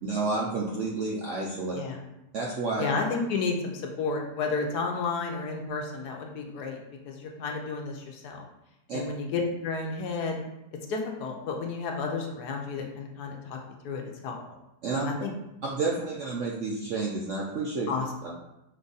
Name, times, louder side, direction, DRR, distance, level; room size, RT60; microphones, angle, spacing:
voice 1, 0.0-1.7 2.3-2.8 8.9-9.0 14.8-15.1 15.6-17.9 18.2-18.3, right 3 dB, 70° right, -3 dB, 0.7 m, -30 dB
voice 2, 2.8-6.8 7.1-8.4 8.9-10.4 10.9-13.6 13.8-14.3 15.0-15.3 17.9-18.1, left 4 dB, 75° left, 1 dB, 1.2 m, -31 dB
5.2 x 2.4 x 3.9 m, 0.90 s
omnidirectional pair, 1.8 m